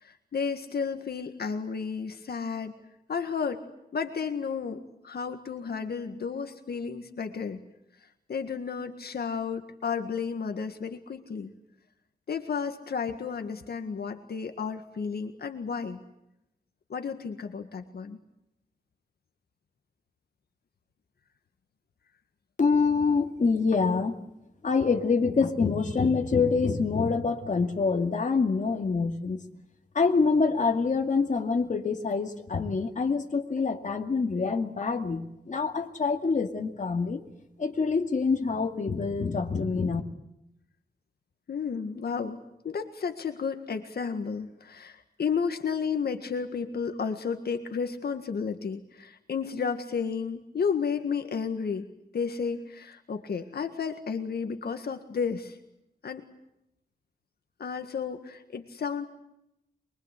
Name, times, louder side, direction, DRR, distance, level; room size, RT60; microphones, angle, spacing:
voice 1, 0.0-2.7 3.1-3.6 3.9-7.6 8.3-11.5 12.3-16.0 16.9-18.2 41.5-42.4 42.6-51.9 52.1-55.6 56.0-56.3 57.6-59.1, left 6 dB, 80° left, 6 dB, 1.8 m, -32 dB
voice 2, 22.6-24.1 24.6-29.4 29.9-37.2 37.6-40.0, left 4 dB, 50° left, 4 dB, 2.4 m, -26 dB
24.5 x 23.0 x 8.3 m, 0.84 s
wide cardioid pair, 150°, 16 cm